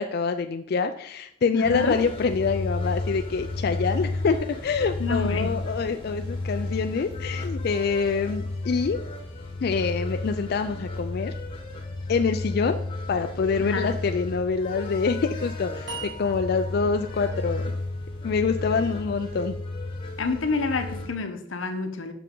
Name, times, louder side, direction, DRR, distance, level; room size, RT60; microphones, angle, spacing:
voice 1, 0.0-9.0 9.6-11.3 12.1-12.8 13.1-17.6 18.2-19.6, left 5 dB, 50° left, 7 dB, 0.3 m, -26 dB
voice 2, 1.5-2.0 5.0-5.5 13.6-13.9 20.2-22.1, left 4 dB, 85° left, 7 dB, 0.9 m, -28 dB
sound 1, 1.6-21.1, left 2 dB, 25° left, 1.0 m, -33 dB
sound 2, 15.9-19.1, right 3 dB, 70° right, 2.2 m, -42 dB
6.8 x 6.0 x 3.7 m, 0.76 s
head